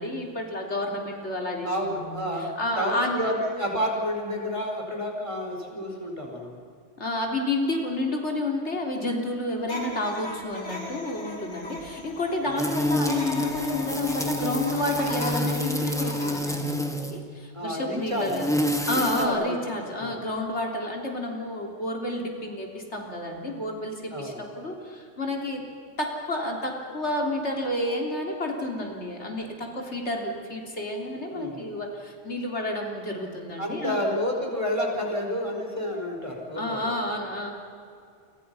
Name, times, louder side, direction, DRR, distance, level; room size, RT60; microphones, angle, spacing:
voice 1, 0.0-1.7 2.0-2.2 2.6-3.3 7.0-18.5 18.9-25.6 26.0-34.0 36.6-37.5, left 1 dB, 70° left, 1 dB, 3.6 m, -30 dB
voice 2, 1.6-6.5 12.4-12.7 17.5-18.4 18.8-19.6 19.9-20.2 24.1-24.4 31.3-31.7 33.6-36.9, equal, 25° right, 1 dB, 4.7 m, -30 dB
sound 1, 9.6-16.5, left 2 dB, 85° left, 4.4 m, -38 dB
sound 2, 12.6-17.2 18.1-19.3, left 1 dB, 5° left, 2.1 m, -28 dB
29.5 x 25.0 x 5.6 m, 2.4 s
omnidirectional pair, 1.2 m